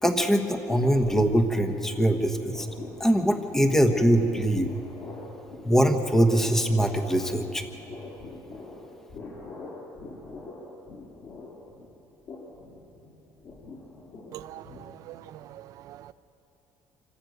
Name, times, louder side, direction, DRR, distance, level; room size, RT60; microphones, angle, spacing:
voice 1, 0.0-2.7 3.0-4.7 5.6-7.6, right 1 dB, 5° left, 6 dB, 1.2 m, -22 dB
sound 1, 0.7-1.9 2.2-15.3, left 3 dB, 50° left, 5.8 m, -44 dB
voice 2, 14.3-16.1, right 13 dB, 60° right, 14 dB, 0.6 m, -44 dB
26.0 x 15.5 x 8.0 m, 2.9 s
cardioid pair, 160°, 7 cm